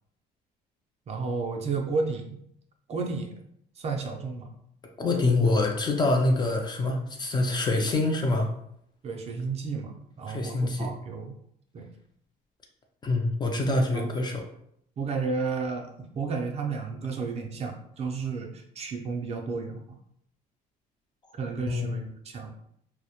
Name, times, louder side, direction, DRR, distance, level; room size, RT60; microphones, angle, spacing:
voice 1, 1.1-2.4 2.9-3.3 3.8-4.5 9.0-11.3 11.7-11.9 13.9-14.1 15.0-20.0 21.4-22.5, right 4 dB, 40° right, 2 dB, 0.4 m, -32 dB
voice 2, 5.0-8.5 10.3-10.9 13.0-14.4 21.7-21.9, left 2 dB, 25° left, 2 dB, 0.4 m, -25 dB
2.1 x 2.0 x 2.8 m, 0.71 s
cardioid pair, 110°, 17 cm